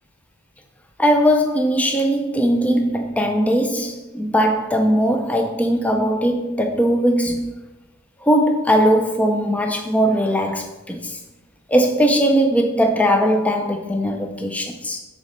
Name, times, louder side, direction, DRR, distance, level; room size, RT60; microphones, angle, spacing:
voice 1, 1.0-7.5 8.2-11.2 11.7-15.0, equal, 5° left, 0.4 m, -19 dB
6.2 x 4.0 x 5.2 m
head